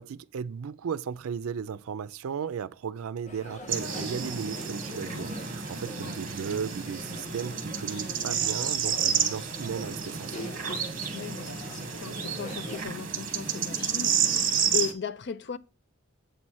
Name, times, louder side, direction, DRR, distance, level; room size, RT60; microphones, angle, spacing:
voice 1, 0.0-10.5, right 7 dB, 85° right, 0.4 m, -35 dB
sound 1, 3.3-12.8, equal, 35° left, 1.5 m, -42 dB
sound 2, 3.7-14.9, right 7 dB, 40° right, 1.2 m, -30 dB
voice 2, 4.9-5.3 6.0-6.2 11.1-15.6, left 6 dB, 55° left, 0.5 m, -37 dB
7.9 x 4.2 x 6.2 m
head